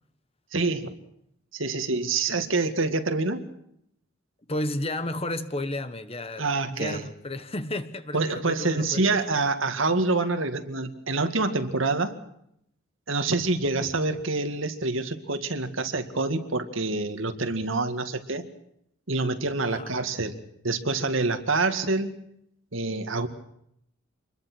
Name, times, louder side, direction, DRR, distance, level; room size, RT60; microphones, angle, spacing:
voice 1, 0.5-0.9 1.5-3.4 6.4-7.1 8.1-12.2 13.1-18.4 19.1-20.3 20.6-22.2 22.7-23.3, right 3 dB, 75° right, 2.2 m, -26 dB
voice 2, 4.5-9.2 19.7-19.9, left 1 dB, 30° left, 1.3 m, -32 dB
26.5 x 21.5 x 6.3 m
head